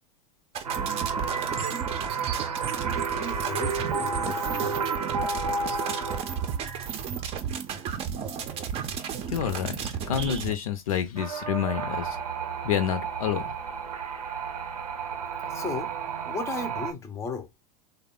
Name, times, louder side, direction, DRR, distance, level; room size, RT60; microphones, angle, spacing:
sound 1, 0.5-10.6, right 7 dB, 30° right, 0.6 m, -33 dB
sound 2, 0.6-6.8 11.2-16.9, right 5 dB, 75° right, 0.6 m, -32 dB
voice 1, 3.0-4.9 15.5-15.9 16.2-17.5, left 4 dB, 15° left, 0.6 m, -36 dB
voice 2, 9.3-12.2 12.6-13.5, left 10 dB, 60° left, 0.7 m, -28 dB
3.4 x 2.2 x 3.6 m
figure-of-eight pair, 90°, 20 cm